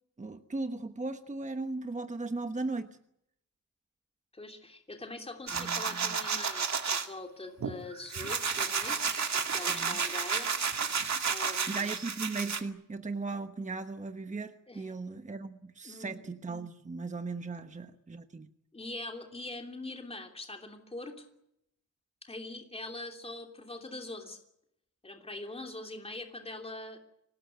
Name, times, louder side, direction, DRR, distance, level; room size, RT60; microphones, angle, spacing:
voice 1, 0.2-3.0 5.5-6.2 9.7-10.0 11.7-18.5, right 3 dB, 25° right, 8 dB, 1.1 m, -37 dB
voice 2, 4.3-10.5 11.2-11.9 14.7-14.9 15.8-16.2 18.7-21.3 22.2-24.4 25.0-27.0, left 2 dB, 20° left, 3 dB, 3.1 m, -43 dB
sound 1, 5.5-7.1 7.6-12.6, right 6 dB, 60° right, 2.2 m, -31 dB
25.0 x 19.5 x 9.3 m, 0.77 s
wide cardioid pair, 155°, 32 cm